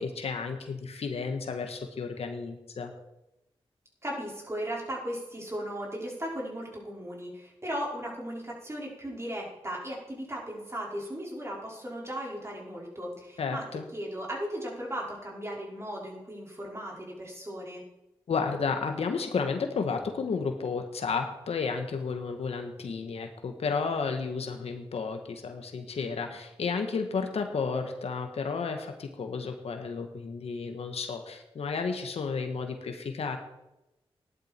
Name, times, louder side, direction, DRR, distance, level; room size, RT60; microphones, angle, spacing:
voice 1, 0.0-2.9 13.4-13.9 18.3-33.4, left 5 dB, 85° left, 5 dB, 1.5 m, -32 dB
voice 2, 4.0-13.6 13.9-17.8, equal, 25° right, -3 dB, 5.2 m, -37 dB
14.0 x 11.0 x 4.5 m, 0.92 s
cardioid pair, 60°, 10 cm